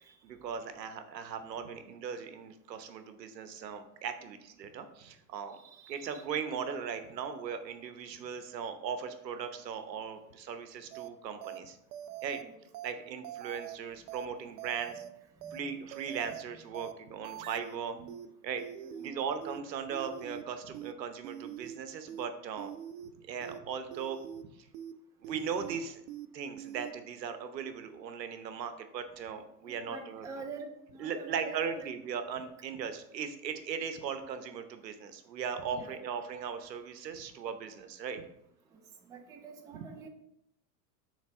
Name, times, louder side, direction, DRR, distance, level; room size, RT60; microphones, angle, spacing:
voice 1, 0.2-5.6 5.9-11.8 12.2-12.4 12.8-15.0 15.5-18.0 18.4-18.6 19.0-22.7 23.3-24.2 24.6-24.7 25.2-26.0 26.3-30.2 31.0-38.2, right 7 dB, 90° right, 9 dB, 0.9 m, -38 dB
voice 2, 5.6-6.3 12.4-12.6 15.4-15.7 17.9-18.3 18.8-19.4 29.7-30.7 30.9-31.9 35.7-36.0 38.7-38.8 39.1-40.1, right 5 dB, 10° right, 4 dB, 0.3 m, -47 dB
sound 1, 10.9-11.1 11.4-11.6 11.9-12.4 12.7-12.9 13.2-13.8 14.1-14.3 14.6-15.1 15.4-15.6 15.9-16.4 16.7-16.9 17.2-17.8 18.1-18.3 18.6-19.1 19.4-19.6 19.9-20.4 20.7-20.9 21.2-21.8 22.1-22.3 22.6-23.1 23.4-23.6 23.9-24.4 24.7-24.9 25.2-25.8 26.1-26.3 26.6-26.9, right 10 dB, 60° right, 0.6 m, -43 dB
7.2 x 3.4 x 4.3 m, 0.78 s
hypercardioid pair, 105°, 49 cm